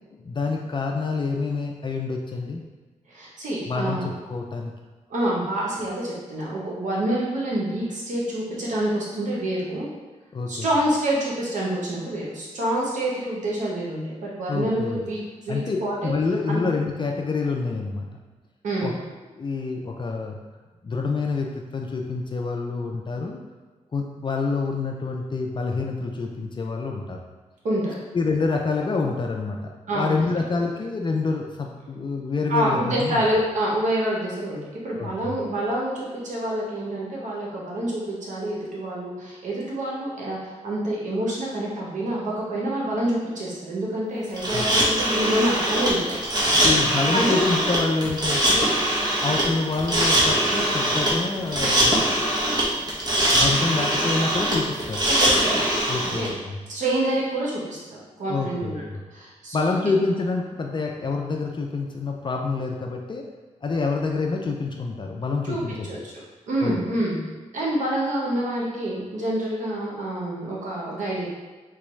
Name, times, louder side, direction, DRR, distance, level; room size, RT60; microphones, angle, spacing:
voice 1, 0.2-2.6 3.7-4.7 10.3-10.7 14.5-15.0 15.5-15.8 16.0-18.1 18.8-18.9 19.3-20.4 20.8-23.4 23.9-27.2 28.1-33.2 35.0-35.4 44.5-44.7 46.6-48.7 49.2-52.0 53.3-55.0 55.9-56.6 58.3-59.0 59.5-63.3 63.6-65.9 66.6-66.8, left 4 dB, 40° left, 1 dB, 0.4 m, -27 dB
voice 2, 3.1-4.1 5.1-9.9 10.5-15.2 15.4-16.1 16.5-16.6 18.6-18.9 27.6-28.0 29.9-30.1 32.5-46.2 46.4-46.7 47.1-47.4 55.0-55.7 56.0-56.3 56.7-58.8 59.1-59.7 65.4-65.6 65.9-67.2 67.5-71.3, right 1 dB, 80° right, -4 dB, 0.8 m, -27 dB
sound 1, 44.4-56.3, right 1 dB, 35° right, 1.0 m, -22 dB
4.0 x 2.2 x 3.1 m, 1.3 s
cardioid pair, 70°, 13 cm